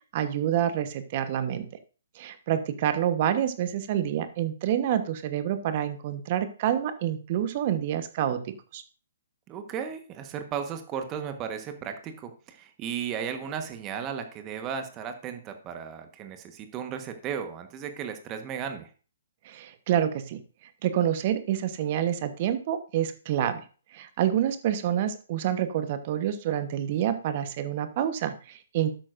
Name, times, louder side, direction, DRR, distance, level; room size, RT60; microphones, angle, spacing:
voice 1, 0.1-1.7 2.1-8.4 8.7-8.8 19.4-20.4 20.8-23.6 23.9-28.9, right 10 dB, 40° right, 11 dB, 1.2 m, -27 dB
voice 2, 9.5-18.9, right 7 dB, 25° right, 7 dB, 1.3 m, -35 dB
12.0 x 9.0 x 2.6 m, 0.37 s
figure-of-eight pair, 130°, 0 cm